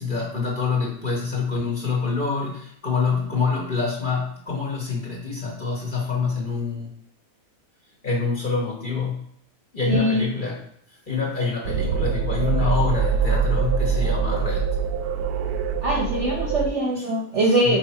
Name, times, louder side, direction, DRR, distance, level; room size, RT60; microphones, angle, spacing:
voice 1, 0.0-6.9 8.0-9.2 9.7-10.6 11.1-14.7 17.0-17.1 17.5-17.8, left 4 dB, 35° left, -3 dB, 1.3 m, -26 dB
voice 2, 9.9-10.2 15.8-17.8, right 1 dB, 55° right, -1 dB, 1.0 m, -22 dB
sound 1, 11.6-16.7, right 5 dB, 85° right, 1.1 m, -24 dB
4.9 x 4.4 x 4.3 m, 0.67 s
omnidirectional pair, 1.6 m